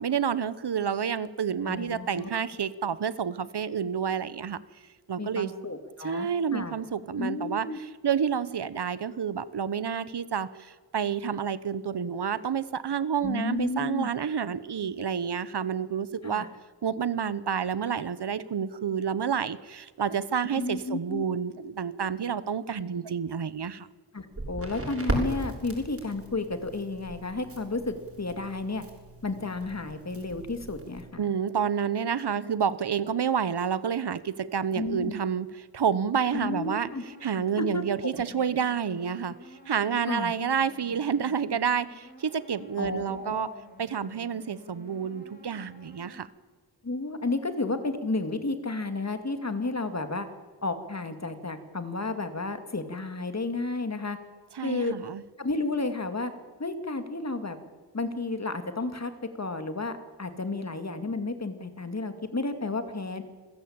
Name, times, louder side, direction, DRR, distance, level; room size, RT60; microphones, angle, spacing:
voice 1, 0.0-4.6 5.1-5.5 6.0-16.4 16.8-23.9 31.2-36.9 37.2-39.4 39.7-43.5 43.8-46.3 54.5-55.2, right 7 dB, 70° right, 16 dB, 1.1 m, -29 dB
voice 2, 1.7-2.4 5.2-6.8 7.2-7.8 13.2-14.1 16.2-16.5 20.5-21.2 24.1-28.8 29.2-31.2 34.7-35.1 36.3-37.0 37.6-38.1 40.1-40.3 42.8-43.6 46.8-50.3 50.6-54.2 54.6-54.9 55.4-56.3 56.6-57.6 57.9-59.1 59.4-63.2, left 3 dB, 40° left, 8 dB, 2.5 m, -32 dB
Crackle, 24.3-31.0, right 1 dB, 35° right, 6.6 m, -37 dB
sound 1, 36.4-46.2, left 1 dB, 20° left, 5.1 m, -52 dB
27.5 x 15.5 x 8.8 m, 1.4 s
wide cardioid pair, 75°, 41 cm